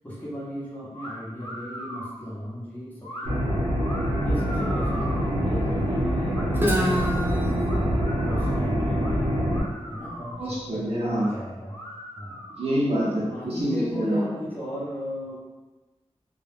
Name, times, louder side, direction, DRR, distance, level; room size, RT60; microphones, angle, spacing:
voice 1, 0.0-3.7 4.2-6.7 7.3-9.4 9.9-11.8 12.1-12.5 13.1-15.4, equal, 15° left, -8 dB, 0.8 m, -36 dB
sound 1, 0.9-1.1 1.4-2.2 3.0-3.3 3.8-5.3 6.3-7.1 7.6-8.6 9.0-9.1 9.5-10.5 11.1-11.3 11.7-12.8, equal, 55° left, 0.7 m, -39 dB
sound 2, 3.2-9.6, equal, 90° right, 0.7 m, -25 dB
Guitar, 6.5-10.3, equal, 20° right, 0.4 m, -29 dB
voice 2, 10.4-11.3 12.6-14.3, equal, 60° right, -7 dB, 0.8 m, -26 dB
2.3 x 2.2 x 3.3 m, 1.2 s
wide cardioid pair, 95°, 12 cm